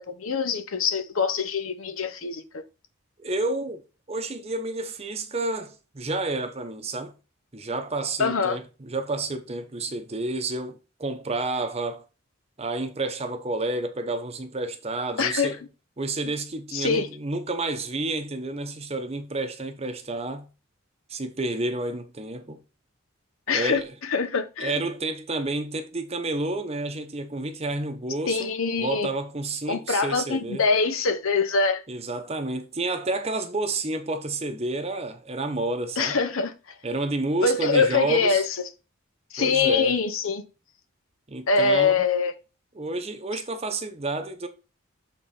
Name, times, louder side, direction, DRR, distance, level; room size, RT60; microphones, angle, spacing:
voice 1, 0.0-2.6 8.2-8.6 15.2-15.6 16.2-16.3 16.7-17.1 23.5-24.8 28.3-29.1 29.7-31.8 36.0-36.5 37.4-38.6 39.3-40.4 41.5-42.3, left 4 dB, 80° left, 0.9 m, -24 dB
voice 2, 3.2-3.8 4.1-7.1 7.5-12.0 12.6-15.6 16.0-20.5 21.1-22.6 23.5-23.9 24.6-28.5 28.8-30.6 31.9-36.2 36.8-38.4 39.4-39.9 41.3-42.0 42.7-44.5, right 2 dB, 30° right, 0.8 m, -30 dB
7.5 x 3.9 x 4.2 m
head